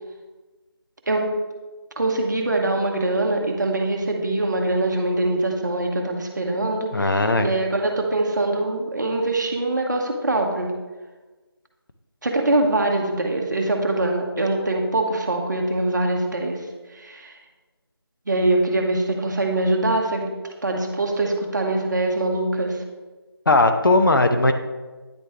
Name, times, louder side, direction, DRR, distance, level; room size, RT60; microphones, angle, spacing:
voice 1, 2.0-10.7 12.2-16.6 16.9-17.4 18.3-22.8, right 2 dB, 45° right, 2 dB, 0.9 m, -23 dB
voice 2, 6.9-7.5 23.5-24.5, left 2 dB, 55° left, 7 dB, 0.6 m, -18 dB
9.5 x 3.2 x 3.4 m, 1.3 s
figure-of-eight pair, 165°, 13 cm